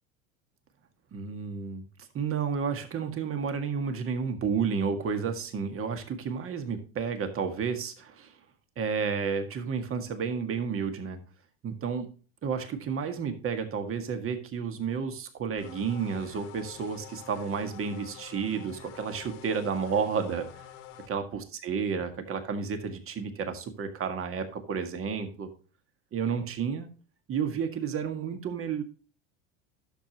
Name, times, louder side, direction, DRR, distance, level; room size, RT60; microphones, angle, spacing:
voice 1, 1.1-1.8 2.1-8.3 8.8-11.2 11.6-12.1 12.4-20.6 21.1-25.5 26.1-26.9 27.3-28.8, right 6 dB, 35° right, 7 dB, 1.8 m, -31 dB
sound 1, 15.6-21.1, left 9 dB, 80° left, 1.6 m, -48 dB
11.5 x 7.0 x 2.9 m, 0.38 s
supercardioid pair, 105°, 38 cm